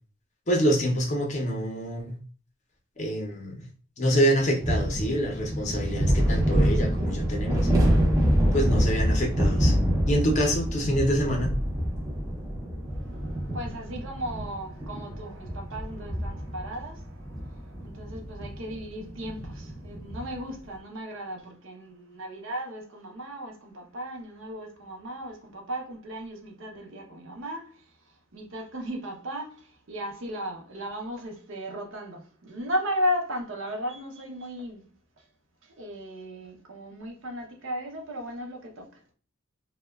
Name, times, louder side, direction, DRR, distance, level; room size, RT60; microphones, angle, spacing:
voice 1, 0.5-2.2 3.0-3.6 4.0-7.7 8.5-9.8 10.1-11.5, equal, 35° left, 0.5 m, -26 dB
sound 1, 4.6-20.4, equal, 15° right, 0.5 m, -26 dB
voice 2, 12.9-27.9 28.3-34.9 35.6-39.0, equal, 65° right, 0.6 m, -36 dB
2.8 x 2.1 x 2.2 m
head